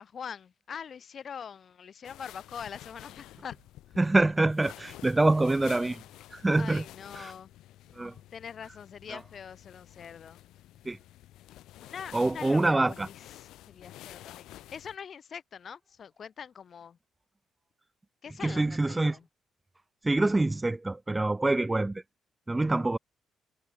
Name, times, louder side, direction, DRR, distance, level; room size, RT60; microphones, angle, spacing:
voice 1, 0.0-3.6 6.5-7.5 8.3-10.4 11.8-17.0 18.2-19.3, left 7 dB, 50° left, 4.0 m, -43 dB
sound 1, 2.0-15.0, left 14 dB, 85° left, 2.0 m, -50 dB
voice 2, 4.0-6.0 6.3-6.8 7.2-7.3 8.0-8.1 9.1-9.2 10.9-11.0 12.1-13.1 18.4-19.2 20.0-22.0 22.5-23.0, right 2 dB, 15° right, 0.7 m, -25 dB
cardioid pair, 90°, 0 cm